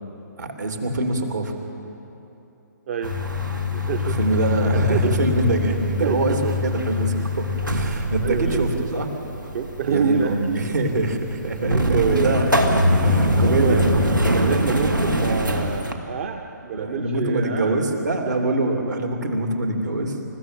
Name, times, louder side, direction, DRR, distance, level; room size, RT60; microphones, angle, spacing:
voice 1, 0.4-1.5 4.0-9.1 9.4-9.5 9.9-12.5 13.0-13.8 16.7-20.2, right 2 dB, 65° right, 3 dB, 3.0 m, -24 dB
sound 1, 3.0-15.9, left 1 dB, 80° right, 2.3 m, -23 dB
voice 2, 3.7-5.2 6.0-6.5 8.2-8.9 9.5-10.6 11.6-12.3 13.4-13.9 14.3-17.9 18.2-18.4, right 7 dB, 40° right, 5 dB, 1.0 m, -27 dB
28.5 x 15.0 x 7.5 m, 2.9 s
figure-of-eight pair, 135°, 10 cm